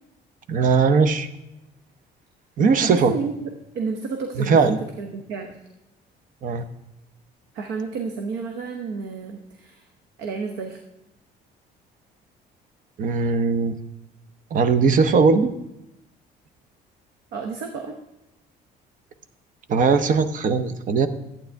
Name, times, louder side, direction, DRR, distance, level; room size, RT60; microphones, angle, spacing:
voice 1, 0.5-1.3 2.6-3.1 4.4-4.8 6.4-6.7 13.0-13.8 14.5-15.5 19.7-21.1, right 5 dB, 50° right, 10 dB, 0.8 m, -19 dB
voice 2, 2.8-3.3 3.7-5.6 7.5-9.9 10.2-10.8 17.3-17.9, right 5 dB, 85° right, 4 dB, 0.9 m, -31 dB
11.5 x 8.8 x 3.4 m, 0.89 s
cardioid pair, 110°, 17 cm